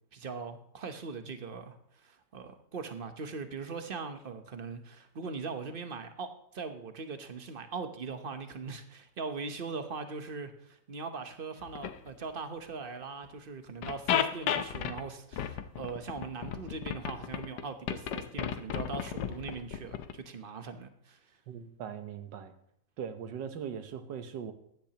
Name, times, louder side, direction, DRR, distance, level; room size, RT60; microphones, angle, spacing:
voice 1, 0.1-21.4, right 4 dB, 45° right, 8 dB, 0.7 m, -40 dB
sound 1, 11.6-12.1 13.2-13.3 13.8-15.0 15.3-17.6 17.9-20.1, left 10 dB, 70° left, 1.3 m, -33 dB
voice 2, 21.5-22.5 23.0-24.5, right 7 dB, 75° right, 9 dB, 1.6 m, -40 dB
15.0 x 10.5 x 2.9 m, 0.77 s
omnidirectional pair, 2.0 m